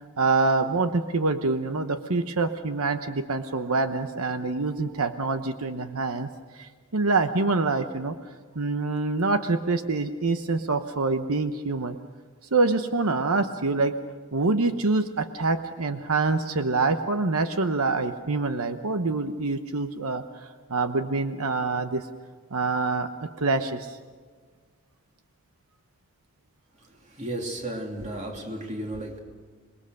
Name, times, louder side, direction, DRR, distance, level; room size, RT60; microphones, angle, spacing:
voice 1, 0.2-6.3 6.5-8.1 8.6-12.0 12.5-13.9 14.3-20.2 20.7-22.1 22.5-23.1 23.4-24.0, right 3 dB, 80° right, 8 dB, 1.0 m, -25 dB
voice 2, 27.2-29.2, right 1 dB, 30° right, 2 dB, 2.9 m, -33 dB
27.0 x 21.0 x 6.5 m, 1.5 s
head